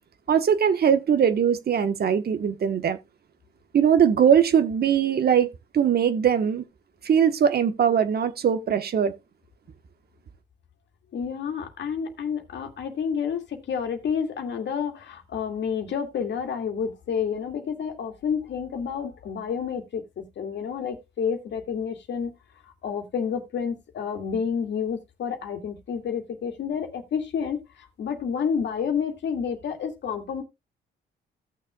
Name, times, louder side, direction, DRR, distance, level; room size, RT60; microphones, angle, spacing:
voice 1, 0.3-3.0 3.7-6.6 7.0-9.1, right 8 dB, 50° right, 1.2 m, -21 dB
voice 2, 11.1-22.3 22.8-30.4, left 7 dB, 65° left, 2.1 m, -29 dB
16.5 x 6.5 x 2.3 m
cardioid pair, 90°, 20 cm